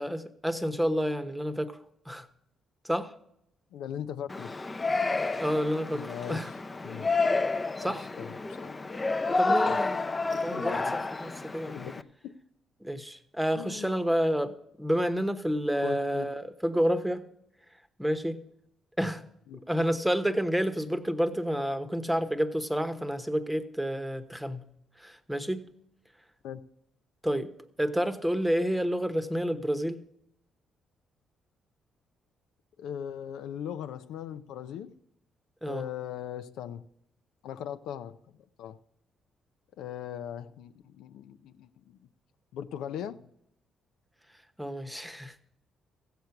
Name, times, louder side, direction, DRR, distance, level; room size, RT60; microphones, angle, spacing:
voice 1, 0.0-1.8 2.1-2.3 2.8-3.1 5.3-6.0 6.3-6.5 7.8-8.1 9.4-10.0 10.4-11.8 12.8-17.2 18.0-18.4 19.0-19.2 19.7-24.6 25.0-25.6 27.2-27.5 27.8-30.0 35.6-35.8 44.6-45.3, equal, 5° right, 10 dB, 1.0 m, -29 dB
voice 2, 3.7-4.5 5.9-6.6 6.8-7.1 7.8-8.7 9.7-9.8 10.5-10.8 11.7-12.3 13.6-14.0 15.8-16.3 19.5-19.6 26.4-26.6 32.8-34.9 35.7-36.8 37.4-38.2 38.6-38.8 39.8-42.0 42.5-43.2, left 9 dB, 85° left, 10 dB, 0.6 m, -39 dB
Yell, 4.3-12.0, left 3 dB, 25° left, 0.6 m, -30 dB
15.0 x 8.0 x 5.8 m, 0.76 s
cardioid pair, 90°, 0 cm